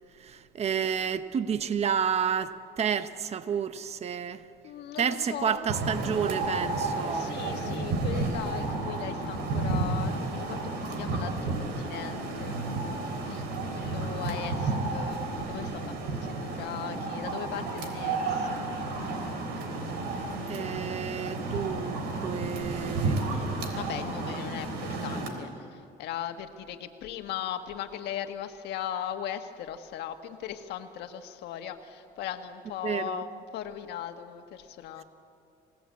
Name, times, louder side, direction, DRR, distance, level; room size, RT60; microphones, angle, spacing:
voice 1, 0.2-4.4 5.0-7.3 20.5-23.2 32.8-33.2, right 7 dB, 40° right, 0.9 m, -30 dB
voice 2, 4.6-5.6 7.1-12.6 13.3-18.7 23.7-35.0, left 10 dB, 80° left, 1.6 m, -38 dB
sound 1, 5.7-25.3, right 3 dB, 90° right, 3.5 m, -32 dB
28.0 x 17.5 x 8.5 m
cardioid pair, 110°, 17 cm